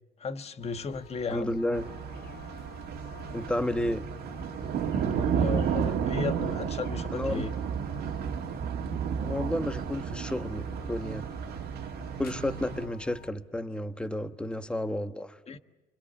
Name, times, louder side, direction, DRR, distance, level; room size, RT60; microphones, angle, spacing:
voice 1, 0.2-1.6 5.0-7.5 15.5-15.6, left 5 dB, 40° left, 1.4 m, -35 dB
sound 1, 0.6-13.3, left 5 dB, 65° left, 1.6 m, -49 dB
voice 2, 1.3-1.9 3.3-4.0 7.1-7.5 9.2-11.2 12.2-15.4, left 1 dB, 5° left, 1.2 m, -31 dB
sound 2, 1.7-12.9, right 7 dB, 70° right, 2.0 m, -32 dB
28.0 x 25.0 x 7.0 m
cardioid pair, 110°, 17 cm